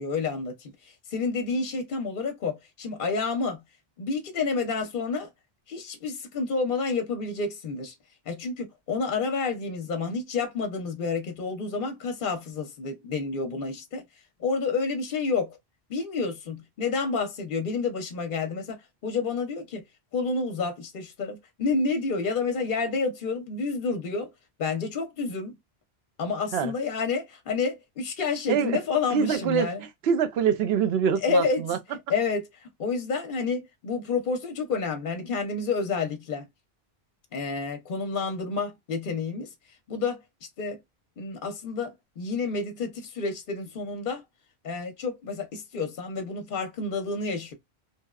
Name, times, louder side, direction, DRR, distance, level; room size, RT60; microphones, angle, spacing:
voice 1, 0.0-3.6 4.0-5.3 5.7-7.9 8.3-14.0 14.4-15.6 15.9-19.8 20.1-24.3 24.6-25.5 26.2-29.8 31.2-31.8 32.1-36.5 37.3-39.5 39.9-40.8 41.2-44.2 44.6-47.5, left 4 dB, 60° left, 0.8 m, -29 dB
voice 2, 28.5-28.8 29.1-29.7 30.0-31.8, right 7 dB, 80° right, 0.8 m, -24 dB
2.8 x 2.1 x 2.3 m
omnidirectional pair, 1.0 m